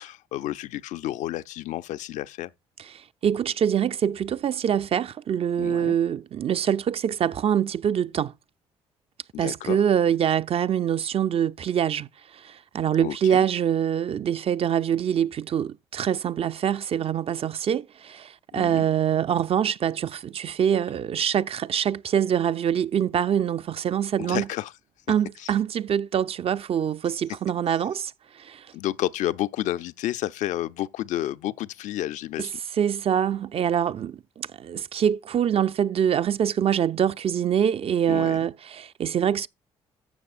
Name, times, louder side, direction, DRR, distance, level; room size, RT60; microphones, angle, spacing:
voice 1, 0.0-2.5 5.6-5.9 9.3-9.8 13.0-13.4 18.5-18.9 24.3-24.7 25.4-25.5 28.7-32.6 38.1-38.5, left 13 dB, 65° left, 0.5 m, -31 dB
voice 2, 2.8-8.3 9.4-24.5 25.1-28.7 32.4-32.5 32.8-39.5, right 9 dB, 45° right, 0.5 m, -25 dB
14.5 x 6.5 x 2.5 m
hypercardioid pair, 50°, 13 cm